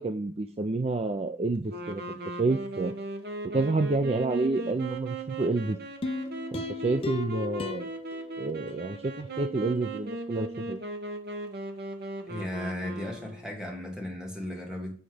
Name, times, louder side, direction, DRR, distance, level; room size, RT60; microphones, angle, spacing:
voice 1, 0.0-2.9 3.4-5.8 6.5-7.9 8.4-10.8, right 3 dB, 30° right, 7 dB, 0.4 m, -29 dB
sound 1, 1.7-13.5, right 1 dB, 55° right, 1.1 m, -38 dB
sound 2, 6.0-9.3 9.8-9.9, left 3 dB, 30° left, 0.4 m, -37 dB
voice 2, 12.3-15.0, left 1 dB, 5° right, 0 dB, 1.9 m, -36 dB
7.9 x 4.1 x 4.9 m, 0.43 s
head